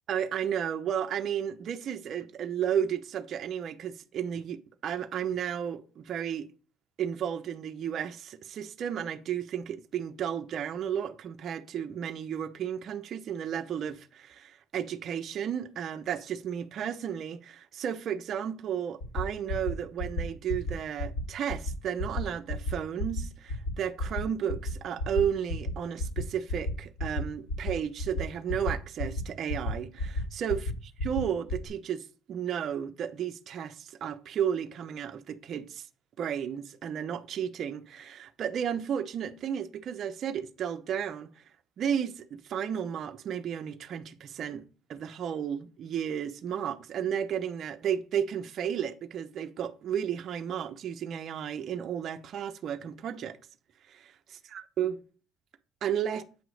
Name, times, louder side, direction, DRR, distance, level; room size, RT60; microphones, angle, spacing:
voice 1, 0.1-6.5 7.0-30.7 31.0-35.9 36.2-41.4 41.8-53.4 53.9-55.0 55.8-56.2, right 8 dB, 50° right, 0.7 m, -33 dB
sound 1, 19.0-19.2 19.5-19.7 20.0-20.2 20.5-20.7 21.0-21.2 21.5-21.7 22.0-22.2 22.5-22.7 23.0-23.2 23.5-23.7 24.0-24.2 24.5-24.7 25.0-25.2 25.5-25.7 26.0-26.2 26.5-26.7 27.0-27.2 27.5-27.7 28.0-28.2 28.5-28.7 29.0-29.2 29.5-29.7 30.0-30.2 30.5-30.7 31.0-31.2 31.5-31.7, left 1 dB, 55° left, 3.0 m, -31 dB
8.5 x 3.1 x 6.3 m
cardioid pair, 110°, 0 cm